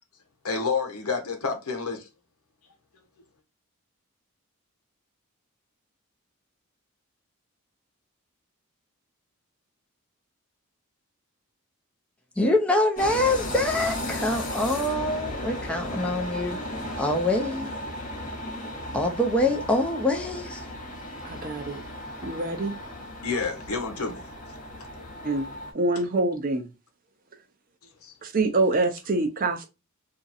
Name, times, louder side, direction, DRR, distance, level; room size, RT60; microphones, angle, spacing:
voice 1, 0.4-2.1 23.2-24.2 28.0-28.1, left 4 dB, 80° left, 1.0 m, -29 dB
voice 2, 12.4-16.6 17.0-17.7 18.9-20.6, left 1 dB, 5° left, 0.5 m, -25 dB
sound 1, 13.0-25.7, left 1 dB, 35° left, 0.9 m, -35 dB
voice 3, 21.2-21.8 22.2-22.8 25.2-25.5 25.7-26.7 28.2-29.7, right 2 dB, 40° right, 0.6 m, -25 dB
2.9 x 2.7 x 2.5 m
head